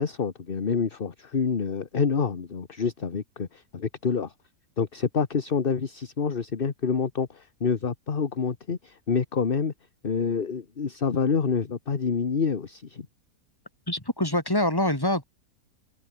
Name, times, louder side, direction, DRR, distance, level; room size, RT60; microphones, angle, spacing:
voice 1, 0.0-4.3 4.8-9.7 10.0-13.1, left 5 dB, 35° left, 1.4 m, -27 dB
voice 2, 13.9-15.2, left 1 dB, 15° left, 4.1 m, -25 dB
omnidirectional pair, 1.7 m